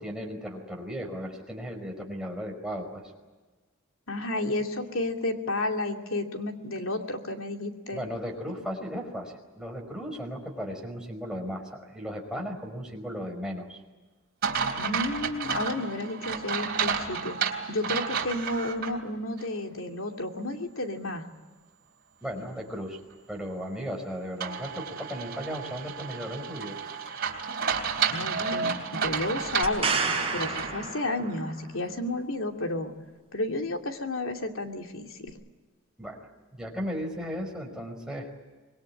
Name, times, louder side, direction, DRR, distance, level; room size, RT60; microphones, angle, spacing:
voice 1, 0.0-3.0 7.9-13.8 22.2-23.0 23.3-26.8 36.0-38.3, equal, 5° right, 1 dB, 5.1 m, -36 dB
voice 2, 4.1-8.0 14.8-21.2 28.1-29.9 30.3-32.9 33.3-35.3, left 2 dB, 80° left, 4 dB, 2.7 m, -32 dB
sound 1, 14.4-18.9 19.4-19.5 24.4-30.8, right 6 dB, 50° right, 3.6 m, -31 dB
sound 2, 29.6-31.6 35.3-35.4, right 4 dB, 25° right, 5.9 m, -30 dB
26.0 x 21.5 x 8.7 m, 1.3 s
head